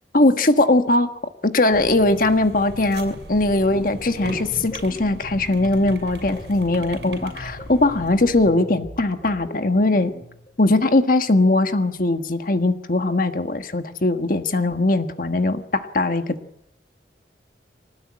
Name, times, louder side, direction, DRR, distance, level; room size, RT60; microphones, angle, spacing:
voice 1, 0.1-1.1 1.4-10.1 10.6-16.4, left 2 dB, 50° left, 8 dB, 1.5 m, -20 dB
sound 1, 1.7-8.5, right 1 dB, 70° right, 6.5 m, -38 dB
sound 2, 3.4-10.5, right 1 dB, 30° left, 3.1 m, -41 dB
24.5 x 19.5 x 9.9 m, 0.82 s
head